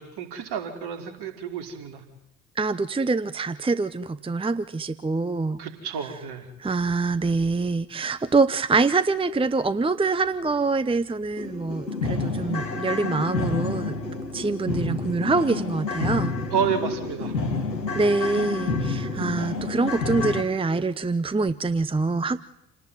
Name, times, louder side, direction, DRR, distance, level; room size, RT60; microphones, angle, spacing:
voice 1, 0.0-2.0 5.6-6.5 16.5-17.3, right 7 dB, 50° right, 7 dB, 5.3 m, -30 dB
voice 2, 2.5-5.6 6.6-14.0 14.3-16.3 17.9-22.4, right 3 dB, 10° right, 14 dB, 1.0 m, -25 dB
sound 1, 10.4-10.5 10.9-11.0 11.4-20.4, left 3 dB, 85° left, 2.3 m, -29 dB
29.0 x 19.0 x 9.6 m, 0.84 s
figure-of-eight pair, 55°, 49 cm